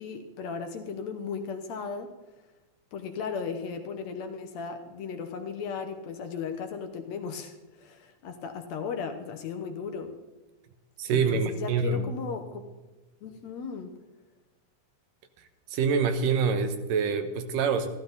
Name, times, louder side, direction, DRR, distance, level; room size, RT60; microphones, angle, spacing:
voice 1, 0.0-2.1 2.9-10.2 11.1-12.6 13.2-13.9, left 6 dB, 65° left, 6 dB, 1.9 m, -36 dB
voice 2, 11.0-12.1 15.7-17.9, right 5 dB, 90° right, 8 dB, 2.8 m, -26 dB
14.0 x 13.0 x 4.0 m, 1.2 s
omnidirectional pair, 3.8 m